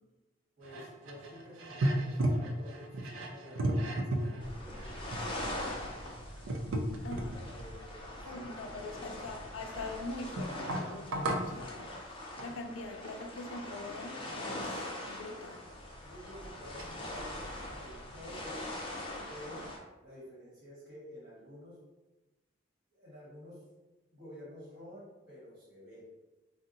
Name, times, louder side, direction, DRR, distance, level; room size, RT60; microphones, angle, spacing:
voice 1, 0.6-6.1 7.3-9.1 16.0-19.6 20.0-21.8 22.9-23.6 24.1-26.1, equal, 50° right, -7 dB, 1.3 m, -51 dB
sound 1, 0.6-7.7 8.2-9.9 10.4-11.6 12.4-12.6 15.1-15.2 15.4-15.6 16.3-16.4 16.8-16.9, right 1 dB, 85° right, 0.4 m, -35 dB
sound 2, 4.4-19.8, left 1 dB, 25° left, 0.5 m, -42 dB
voice 2, 7.0-7.4 8.3-15.6, left 2 dB, 90° left, 4 dB, 0.4 m, -43 dB
2.6 x 2.1 x 3.8 m, 1.1 s
head